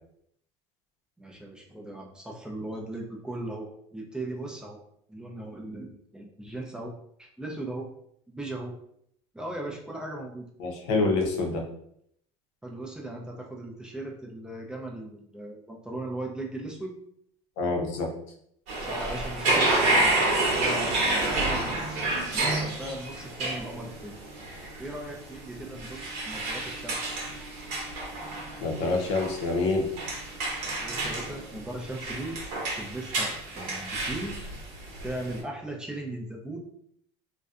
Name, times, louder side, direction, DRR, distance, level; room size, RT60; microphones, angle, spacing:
voice 1, 1.2-4.8 5.1-6.9 7.2-7.9 8.3-8.7 9.3-10.5 12.6-16.9 18.8-24.2 24.8-27.1 30.6-32.4 32.8-34.4 35.0-36.6, right 1 dB, 5° right, 0 dB, 0.4 m, -38 dB
voice 2, 10.6-11.6 17.6-18.1 28.6-29.9, left 3 dB, 80° left, 2 dB, 0.7 m, -26 dB
sound 1, 18.7-35.4, right 2 dB, 60° right, 0.9 m, -29 dB
2.6 x 2.1 x 2.4 m, 0.69 s
supercardioid pair, 115°, 15 cm